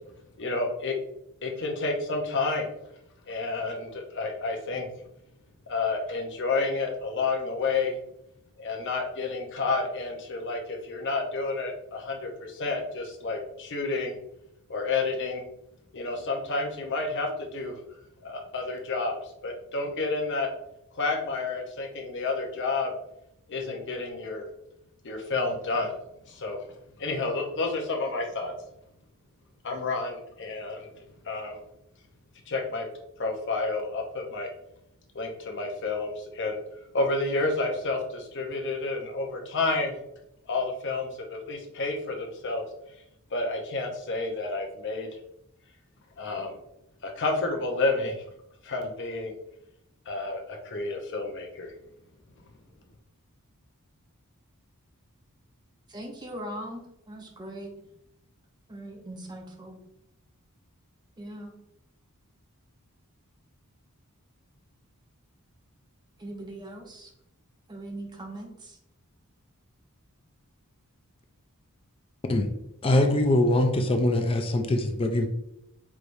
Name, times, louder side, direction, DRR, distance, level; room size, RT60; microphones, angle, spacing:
voice 1, 0.4-0.9 1.4-2.7 3.3-4.9 5.7-8.0 8.6-14.1 14.7-15.4 15.9-17.8 18.2-19.2 19.4-20.5 20.9-22.9 23.5-24.4 25.0-26.0 26.3-26.6 27.0-28.5 29.6-30.9 31.2-31.6 32.5-32.9 33.2-34.5 35.1-36.6 36.9-40.0 40.5-42.6 43.3-45.1 46.2-46.5 47.0-48.2 48.6-49.3 50.1-51.7, left 3 dB, 55° left, 2 dB, 0.8 m, -30 dB
voice 2, 55.9-57.9 58.7-59.8 61.2-61.5 66.2-67.1 67.7-68.8, right 1 dB, 20° right, 0 dB, 0.8 m, -40 dB
voice 3, 72.8-75.3, left 1 dB, 25° left, 5 dB, 0.4 m, -23 dB
4.7 x 3.3 x 2.6 m, 0.79 s
head